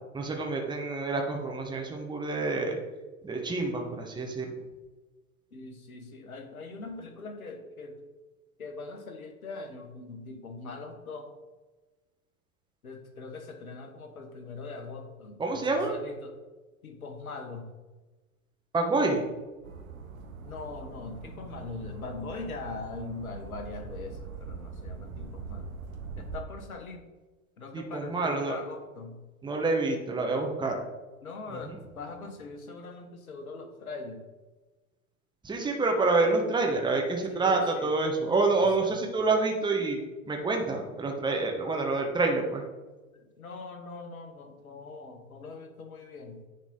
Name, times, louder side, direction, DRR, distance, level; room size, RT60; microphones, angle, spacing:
voice 1, 0.1-2.8 3.2-4.5 15.4-15.9 18.7-19.2 27.7-28.6 29.4-30.7 35.4-40.0 40.3-42.6, right 3 dB, 10° right, 1 dB, 1.1 m, -27 dB
voice 2, 5.5-8.0 8.6-11.3 12.8-16.4 16.8-17.7 20.4-25.7 26.2-27.0 27.6-29.2 31.2-34.2 37.3-37.9 38.6-39.0 43.1-46.4, left 3 dB, 85° left, 5 dB, 1.2 m, -41 dB
sound 1, 19.6-26.4, right 4 dB, 80° right, 1.0 m, -42 dB
9.7 x 3.9 x 3.8 m, 1.2 s
hypercardioid pair, 85°, 42 cm